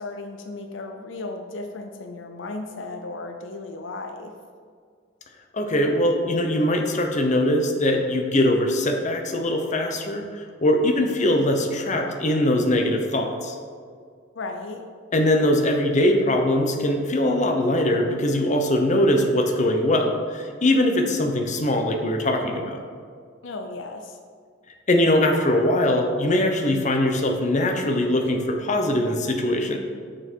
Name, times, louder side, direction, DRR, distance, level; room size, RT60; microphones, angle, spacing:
voice 1, 0.0-4.3 14.3-14.8 23.4-24.2, left 2 dB, 75° left, 5 dB, 0.6 m, -35 dB
voice 2, 5.5-13.6 15.1-22.8 24.9-29.8, left 1 dB, 40° left, 3 dB, 0.8 m, -22 dB
6.7 x 6.3 x 4.5 m, 2.1 s
head